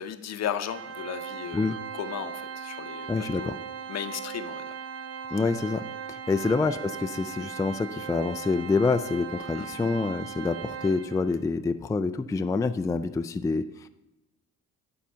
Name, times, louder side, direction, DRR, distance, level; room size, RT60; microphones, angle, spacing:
voice 1, 0.0-3.6 3.9-4.7 6.4-6.5 9.5-9.7, left 9 dB, 60° left, 11 dB, 0.7 m, -35 dB
Organ, 0.7-11.4, right 7 dB, 55° right, 0.6 m, -38 dB
voice 2, 3.1-3.6 5.3-13.9, left 3 dB, 10° left, 9 dB, 0.3 m, -27 dB
10.0 x 3.8 x 5.6 m, 1.0 s
cardioid pair, 90°, 30 cm